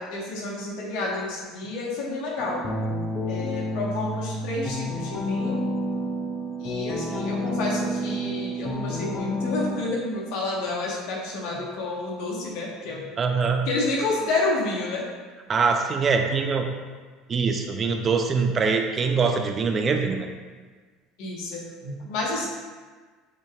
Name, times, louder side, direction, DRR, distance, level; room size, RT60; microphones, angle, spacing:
voice 1, 0.0-2.7 3.3-5.6 6.6-13.0 13.7-15.0 21.2-22.5, left 2 dB, 70° left, -3 dB, 1.3 m, -30 dB
sound 1, 2.4-9.7, equal, 30° left, 0.5 m, -29 dB
voice 2, 13.2-13.7 15.5-16.7 17.3-20.3, right 5 dB, 35° right, 4 dB, 0.4 m, -23 dB
6.6 x 2.9 x 2.4 m, 1.4 s
supercardioid pair, 110°, 0 cm